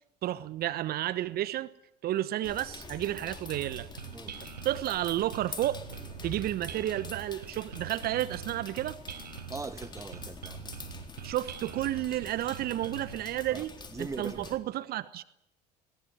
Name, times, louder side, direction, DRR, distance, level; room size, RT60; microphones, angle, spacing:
voice 1, 0.2-1.7 2.0-3.9 4.6-5.8 6.2-9.0 11.2-13.7 14.0-15.2, right 14 dB, 45° right, 1.1 m, -31 dB
sound 1, 2.4-14.6, left 3 dB, 20° left, 4.0 m, -46 dB
sound 2, 3.5-13.1, right 7 dB, 85° right, 1.5 m, -44 dB
voice 2, 9.5-10.6 13.5-13.6 13.9-14.6, right 3 dB, 15° right, 1.3 m, -40 dB
21.0 x 19.5 x 9.9 m
figure-of-eight pair, 65°, 21 cm